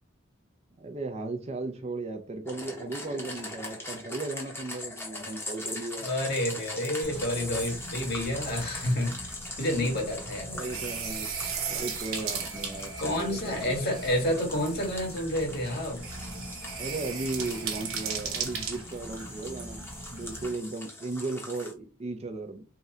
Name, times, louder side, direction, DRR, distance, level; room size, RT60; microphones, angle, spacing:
voice 1, 0.8-6.1 9.8-10.0 10.5-11.3 11.7-13.8 16.8-19.8 20.1-22.6, right 3 dB, 30° right, 0.5 m, -36 dB
sound 1, 2.5-21.7, left 2 dB, 10° left, 0.9 m, -41 dB
voice 2, 6.0-10.7 13.0-16.0, left 1 dB, 50° left, 1.9 m, -29 dB
sound 2, 7.0-20.5, right 5 dB, 80° right, 1.0 m, -38 dB
3.7 x 2.2 x 4.1 m
head